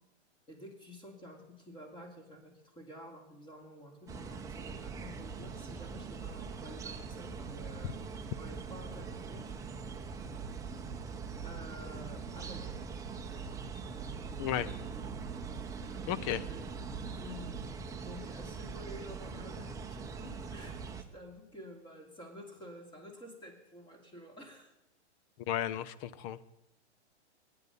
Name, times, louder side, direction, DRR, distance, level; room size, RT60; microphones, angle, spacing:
voice 1, 0.5-8.0 8.4-9.6 11.4-12.8 16.4-16.8 17.1-17.5 18.0-24.7, equal, 15° left, 4 dB, 2.7 m, -50 dB
sound 1, 4.1-21.0, right 5 dB, 10° right, 0.9 m, -42 dB
voice 2, 14.4-14.7 16.1-16.4 25.5-26.5, left 11 dB, 30° left, 18 dB, 0.5 m, -34 dB
21.5 x 9.6 x 5.3 m, 0.89 s
hypercardioid pair, 135°, 35 cm